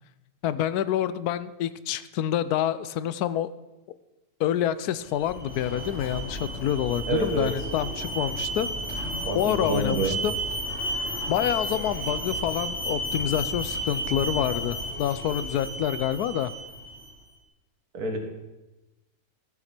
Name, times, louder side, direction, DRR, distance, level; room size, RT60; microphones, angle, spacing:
voice 1, 0.4-3.5 4.4-9.1 9.3-10.4 11.3-16.5, left 10 dB, 90° left, 15 dB, 1.1 m, -27 dB
Alarm, 5.1-17.1, equal, 45° left, 2.6 m, -32 dB
voice 2, 7.1-7.5 9.2-10.1 17.9-18.2, right 2 dB, 80° right, 3 dB, 2.3 m, -27 dB
13.0 x 7.4 x 6.0 m, 1.0 s
omnidirectional pair, 1.6 m